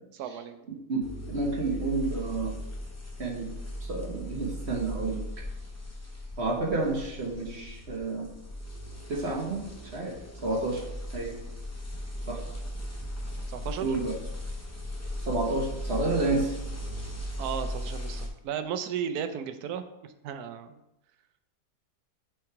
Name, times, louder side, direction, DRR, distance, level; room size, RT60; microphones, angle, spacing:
voice 1, 0.1-0.6 13.5-13.9 17.4-20.8, right 8 dB, 80° right, 9 dB, 1.1 m, -35 dB
voice 2, 0.7-2.5 3.2-3.5 3.9-5.2 6.4-8.3 9.1-9.6 9.9-10.1 10.4-10.8 11.1-11.3 12.3-12.4 13.8-14.1 15.2-16.5, right 3 dB, 45° right, -1 dB, 1.2 m, -30 dB
sound 1, 1.0-18.3, equal, 15° left, 0.6 m, -38 dB
6.0 x 3.6 x 4.6 m, 0.85 s
omnidirectional pair, 1.6 m